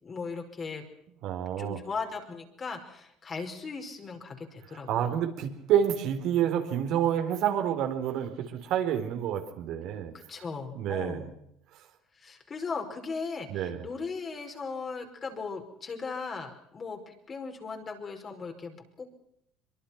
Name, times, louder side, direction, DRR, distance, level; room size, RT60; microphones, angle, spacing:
voice 1, 0.0-0.8 1.6-5.2 10.1-11.4 12.2-19.1, left 4 dB, 30° left, 4 dB, 5.3 m, -38 dB
voice 2, 1.2-1.8 4.9-10.1 10.7-11.3 13.5-13.8, right 9 dB, 65° right, 5 dB, 4.2 m, -28 dB
24.0 x 23.5 x 6.0 m, 0.76 s
cardioid pair, 115°, 0 cm